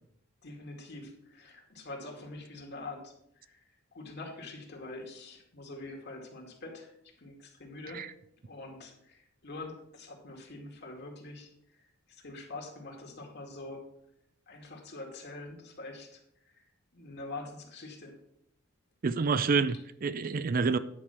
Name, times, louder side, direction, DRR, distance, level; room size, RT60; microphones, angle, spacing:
voice 1, 0.4-3.6 3.9-6.9 7.2-8.0 8.4-11.5 12.2-13.8 14.5-16.2 16.5-16.7 16.9-18.1, left 2 dB, 55° left, 2.2 m, -44 dB
voice 2, 19.0-20.8, right 4 dB, 40° right, 0.4 m, -28 dB
10.0 x 5.1 x 6.8 m
head